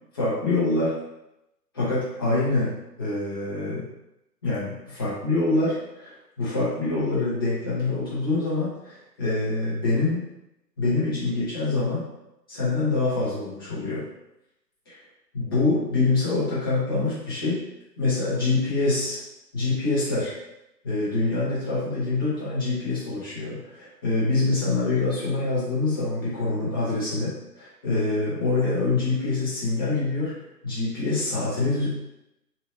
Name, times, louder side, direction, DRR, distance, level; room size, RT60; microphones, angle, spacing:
voice 1, 0.1-1.0 1.7-3.9 4.4-10.2 10.8-12.0 12.5-14.1 15.3-17.6 18.0-19.2 19.5-20.3 20.8-30.4 30.6-31.9, left 3 dB, 15° left, -9 dB, 0.6 m, -25 dB
3.1 x 2.7 x 2.6 m, 0.86 s
figure-of-eight pair, 135°, 50 cm